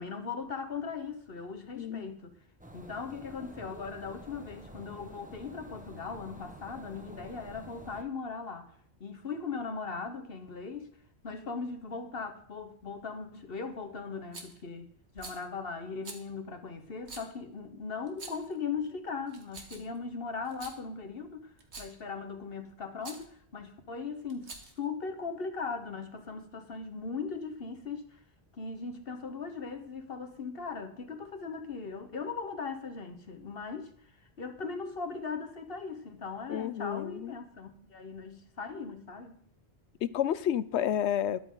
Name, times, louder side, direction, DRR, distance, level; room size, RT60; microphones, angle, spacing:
voice 1, 0.0-2.4 2.7-8.7 9.0-10.9 11.2-14.9 15.1-28.2 28.5-33.9 34.4-39.4, left 5 dB, 60° left, 1.4 m, -39 dB
voice 2, 1.7-2.1 36.5-37.4 40.0-41.4, left 10 dB, 85° left, 0.9 m, -30 dB
sound 1, 2.6-8.0, equal, 10° right, 1.2 m, -49 dB
Rattle, 14.3-14.6 15.1-15.4 16.0-16.2 17.0-17.3 18.1-18.5 19.3-20.0 20.4-20.8 21.6-22.0 23.0-23.3 24.3-24.8, right 3 dB, 80° right, 2.0 m, -46 dB
12.5 x 11.5 x 3.9 m
omnidirectional pair, 1.1 m